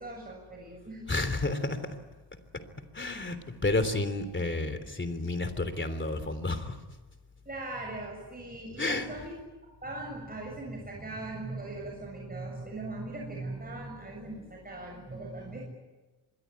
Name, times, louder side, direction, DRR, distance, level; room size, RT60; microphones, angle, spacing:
voice 1, 0.0-1.1 7.5-9.4 9.8-15.6, right 2 dB, 20° right, -1 dB, 7.2 m, -40 dB
voice 2, 1.1-1.8 2.9-6.8 8.8-9.1, left 2 dB, 30° left, 11 dB, 3.3 m, -30 dB
25.5 x 22.0 x 9.7 m, 1.2 s
wide cardioid pair, 105°, 41 cm